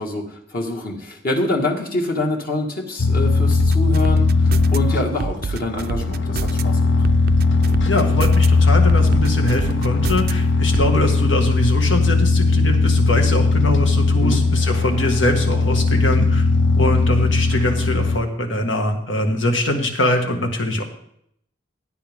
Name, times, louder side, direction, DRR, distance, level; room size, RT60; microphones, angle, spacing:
voice 1, 0.0-7.1 14.2-14.4, left 1 dB, 50° left, 1 dB, 2.0 m, -26 dB
sound 1, 3.0-18.2, left 3 dB, 65° left, 0.6 m, -18 dB
sound 2, 3.6-4.8 5.2-6.6 7.0-8.5 8.9-10.3 10.7-10.9, right 5 dB, 55° right, 0.4 m, -27 dB
voice 2, 7.9-16.5 16.8-20.8, left 1 dB, 85° left, 3 dB, 2.0 m, -23 dB
16.5 x 9.5 x 3.7 m, 0.70 s
head